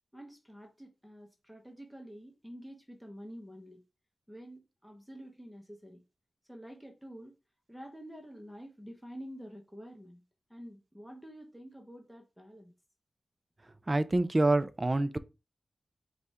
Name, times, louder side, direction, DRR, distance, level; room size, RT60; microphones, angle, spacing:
voice 1, 0.1-3.8 4.3-6.0 6.5-7.4 7.7-10.2 10.5-12.7, equal, ahead, 0.9 m, -48 dB
voice 2, 13.9-15.2, right 2 dB, 25° right, 0.4 m, -26 dB
4.9 x 2.3 x 4.2 m
wide cardioid pair, 80°, 0 cm